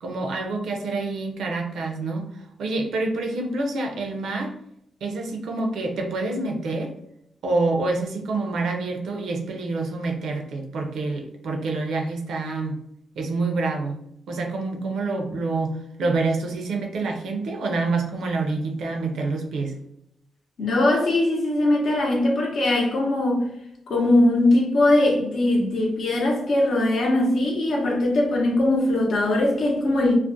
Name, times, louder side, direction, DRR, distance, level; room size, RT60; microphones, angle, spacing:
voice 1, 0.0-4.5 5.0-6.9 7.4-12.8 13.2-19.8, right 3 dB, 85° right, 0.5 m, -27 dB
voice 2, 20.6-23.5 23.9-30.1, left 1 dB, 70° left, 0.7 m, -21 dB
2.4 x 2.1 x 2.5 m
cardioid pair, 110°, 0 cm